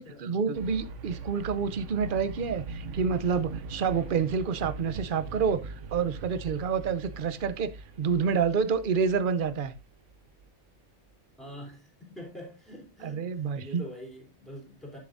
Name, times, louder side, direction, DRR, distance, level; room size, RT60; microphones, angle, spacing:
voice 1, 0.0-9.8 13.0-13.8, right 6 dB, 50° right, 0.8 m, -28 dB
sound 1, 0.5-10.5, right 4 dB, 70° right, 1.1 m, -42 dB
voice 2, 11.4-15.0, equal, ahead, 3.4 m, -45 dB
11.0 x 6.9 x 2.6 m
omnidirectional pair, 1.4 m